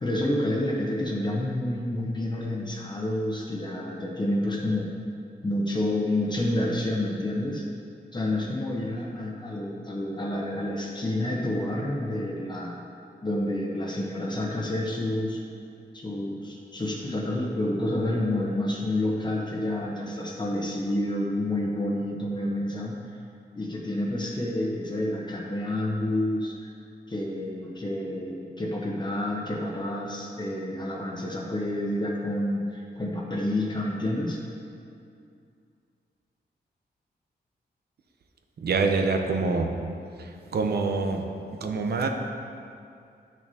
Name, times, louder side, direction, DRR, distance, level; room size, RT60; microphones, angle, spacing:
voice 1, 0.0-4.9 5.4-7.6 8.1-12.8 13.2-15.4 15.9-23.0 23.6-26.7 27.1-34.4, left 1 dB, 25° left, -2 dB, 0.9 m, -29 dB
voice 2, 38.6-39.7 40.5-41.2 41.6-42.1, right 4 dB, 70° right, 4 dB, 0.7 m, -25 dB
10.5 x 6.1 x 2.8 m, 2.4 s
wide cardioid pair, 110°, 17 cm